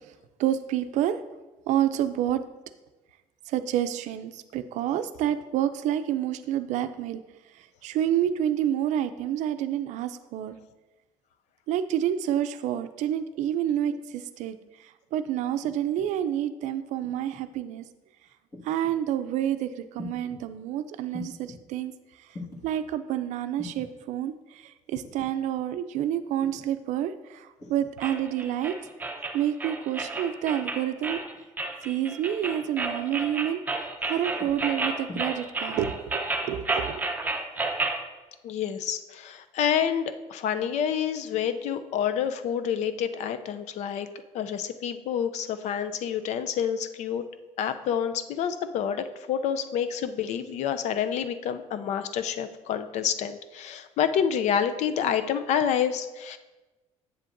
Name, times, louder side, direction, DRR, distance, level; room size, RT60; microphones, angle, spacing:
voice 1, 0.4-1.2 1.7-2.4 3.5-7.2 7.6-10.6 11.7-17.9 18.6-21.9 22.6-28.7 29.3-31.2 31.8-37.1, right 11 dB, 70° right, 11 dB, 0.4 m, -28 dB
sound 1, 15.6-16.1 17.0-17.4 18.5-19.0 20.0-20.4 21.1-21.6 22.3-22.6 23.6-23.9 25.0-25.3 26.4-26.7 27.6-27.9 28.6-28.9 30.0-30.3 31.2-31.5 32.4-32.7 33.2-33.5 34.4-34.7 35.1-35.2, left 3 dB, 25° left, 1.6 m, -43 dB
sound 2, 28.0-38.0, right 3 dB, 15° right, 0.7 m, -31 dB
voice 2, 38.4-44.1 44.3-47.2 47.6-56.4, left 8 dB, 65° left, 11 dB, 0.5 m, -28 dB
7.9 x 7.4 x 2.6 m, 1.1 s
cardioid pair, 120°, 13 cm